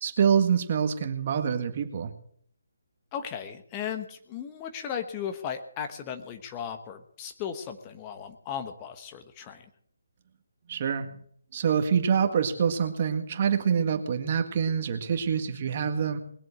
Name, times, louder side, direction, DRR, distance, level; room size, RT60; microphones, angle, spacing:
voice 1, 0.0-2.1 10.7-11.1 11.5-16.2, right 7 dB, 40° right, 6 dB, 1.8 m, -26 dB
voice 2, 3.1-9.7, left 8 dB, 20° left, 6 dB, 1.1 m, -36 dB
20.5 x 7.6 x 7.8 m, 0.63 s
figure-of-eight pair, 145°, 0 cm